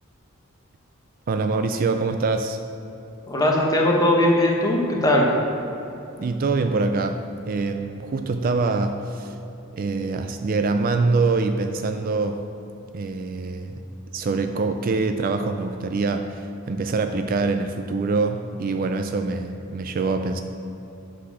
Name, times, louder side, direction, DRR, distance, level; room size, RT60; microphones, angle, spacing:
voice 1, 1.3-2.6 6.2-9.3 9.7-12.4 12.9-13.8 14.1-20.4, right 3 dB, 40° right, 7 dB, 0.3 m, -24 dB
voice 2, 3.3-5.3, left 1 dB, 15° left, -1 dB, 1.0 m, -19 dB
8.5 x 4.1 x 6.1 m, 2.9 s
head